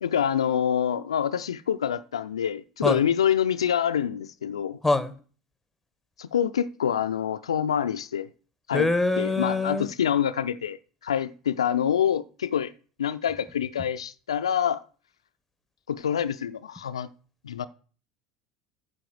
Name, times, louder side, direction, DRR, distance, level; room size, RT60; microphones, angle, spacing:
voice 1, 0.0-4.8 6.2-8.3 8.7-8.9 9.2-10.8 11.0-12.7 13.0-14.8 15.9-17.1 17.4-17.7, left 9 dB, 85° left, 0.4 m, -26 dB
voice 2, 8.7-9.9, left 2 dB, 5° left, 1.2 m, -24 dB
8.6 x 5.2 x 7.7 m
hypercardioid pair, 75°, 3 cm